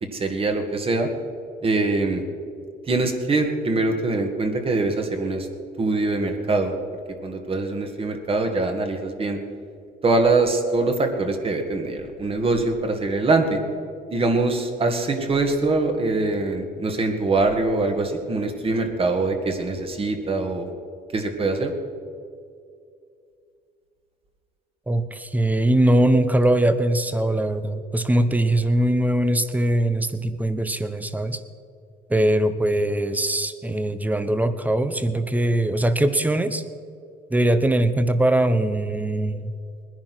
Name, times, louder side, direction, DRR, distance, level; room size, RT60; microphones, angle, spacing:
voice 1, 0.0-1.1 1.6-2.2 2.9-5.5 5.8-6.7 7.2-9.4 10.0-13.6 14.1-20.7 21.1-21.7, right 3 dB, 35° right, 5 dB, 2.1 m, -23 dB
voice 2, 24.9-31.4 32.1-36.6 37.3-39.5, right 1 dB, 10° right, 11 dB, 1.0 m, -21 dB
20.0 x 10.5 x 6.2 m, 2.4 s
cardioid pair, 110°, 17 cm